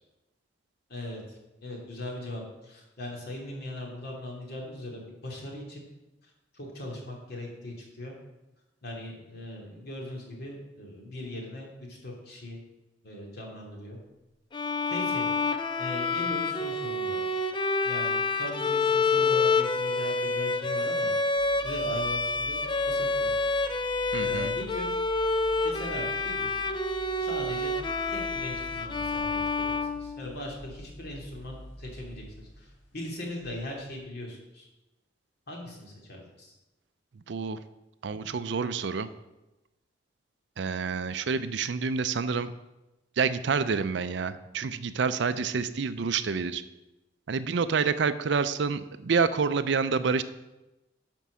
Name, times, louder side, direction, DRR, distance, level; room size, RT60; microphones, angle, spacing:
voice 1, 0.9-1.2 1.6-5.8 6.5-8.1 8.8-12.6 13.0-14.0 14.9-15.3 15.8-17.2 17.8-21.1 21.6-23.3 24.2-24.9 25.6-26.5 27.2-27.8 28.1-34.7 35.5-36.5, left 1 dB, 55° left, -1 dB, 2.5 m, -39 dB
Bowed string instrument, 14.5-30.6, left 3 dB, 25° left, 0.5 m, -28 dB
sound 1, 21.4-34.0, equal, 75° left, 2.0 m, -47 dB
voice 2, 24.1-24.5 37.3-37.6 38.0-39.1 40.6-42.5 43.2-46.6 47.3-50.2, right 5 dB, 65° right, 13 dB, 0.5 m, -28 dB
11.0 x 4.6 x 6.3 m, 1.0 s
head